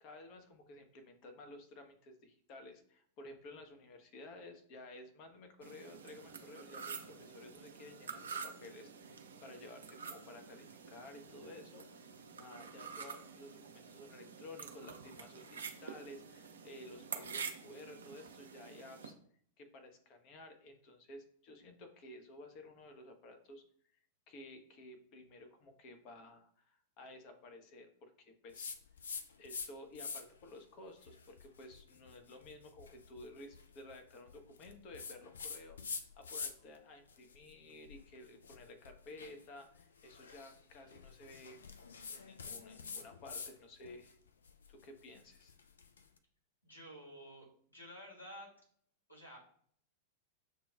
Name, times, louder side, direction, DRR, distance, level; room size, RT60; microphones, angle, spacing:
voice 1, 0.0-19.1 19.6-23.6 24.3-28.8 29.4-41.6 42.1-44.2 44.7-45.5, left 2 dB, 40° left, 6 dB, 0.7 m, -54 dB
sound 1, 5.6-19.1, right 5 dB, 70° right, 0.5 m, -48 dB
sound 2, 28.5-29.7 29.9-30.5 31.0-36.8 37.1-43.5 43.8-46.0, left 5 dB, 70° left, 0.3 m, -47 dB
voice 2, 46.6-48.5 49.1-49.4, equal, 85° left, -4 dB, 1.4 m, -52 dB
6.6 x 2.3 x 2.2 m, 0.62 s
figure-of-eight pair, 95°, 0 cm